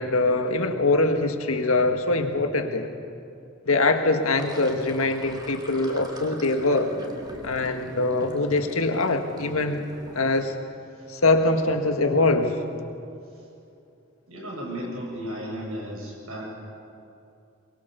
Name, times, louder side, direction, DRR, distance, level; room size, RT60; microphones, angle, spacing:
voice 1, 0.0-2.9 3.6-6.9 7.4-9.8 10.1-10.5 11.1-12.5, left 2 dB, 90° left, 5 dB, 1.8 m, -23 dB
Sink (filling or washing), 4.2-10.4, right 1 dB, 20° right, 2.0 m, -43 dB
voice 2, 14.3-16.4, equal, 80° right, -2 dB, 7.6 m, -34 dB
23.0 x 22.0 x 6.9 m, 2.6 s
head